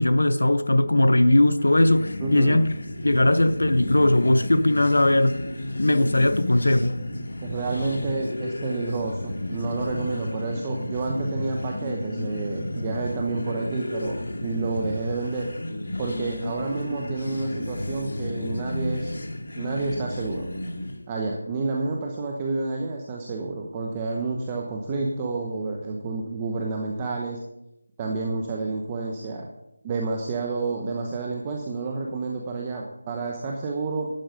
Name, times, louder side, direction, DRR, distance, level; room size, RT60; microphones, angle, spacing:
voice 1, 0.0-2.7 3.0-5.4 5.8-7.0, left 1 dB, 85° left, 0.8 m, -19 dB
sound 1, 1.6-21.0, left 1 dB, 60° left, 2.1 m, -33 dB
voice 2, 2.2-2.7 7.4-15.5 16.0-19.1 19.6-20.5 21.1-27.4 28.0-29.5 29.8-34.1, right 3 dB, 20° right, 1.0 m, -29 dB
12.0 x 9.3 x 5.2 m
figure-of-eight pair, 170°, 0 cm